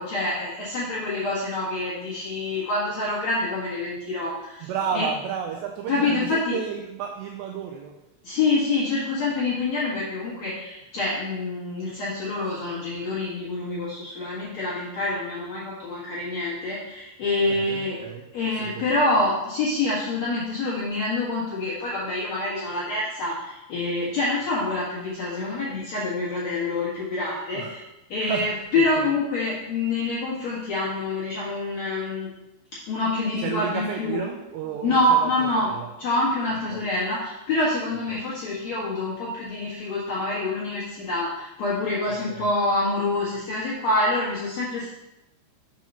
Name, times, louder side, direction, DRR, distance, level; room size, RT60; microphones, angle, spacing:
voice 1, 0.0-5.1 5.9-6.6 8.2-18.0 18.3-27.8 28.1-32.3 32.9-34.2 34.8-35.7 36.0-44.9, left 2 dB, 60° left, -9 dB, 1.8 m, -26 dB
voice 2, 4.6-8.0 17.5-19.0 27.5-27.8 28.2-29.1 33.4-35.9 36.7-36.8 38.1-38.2 42.3-42.5, right 7 dB, 90° right, 3 dB, 2.4 m, -33 dB
7.6 x 4.6 x 5.4 m, 0.95 s
omnidirectional pair, 5.6 m